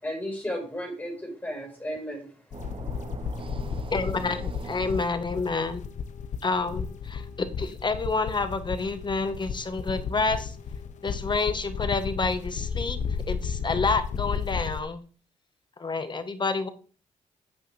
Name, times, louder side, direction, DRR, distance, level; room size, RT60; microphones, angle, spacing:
voice 1, 0.0-2.3, equal, 15° left, 4.7 m, -34 dB
sound 1, 2.5-14.8, left 6 dB, 65° left, 0.8 m, -34 dB
voice 2, 2.6-3.9, right 5 dB, 40° right, 0.7 m, -41 dB
voice 3, 3.9-5.8 6.4-10.5 11.0-13.0 13.3-15.0 15.8-16.7, left 3 dB, 35° left, 1.4 m, -28 dB
8.6 x 8.0 x 3.4 m
cardioid pair, 65°, 14 cm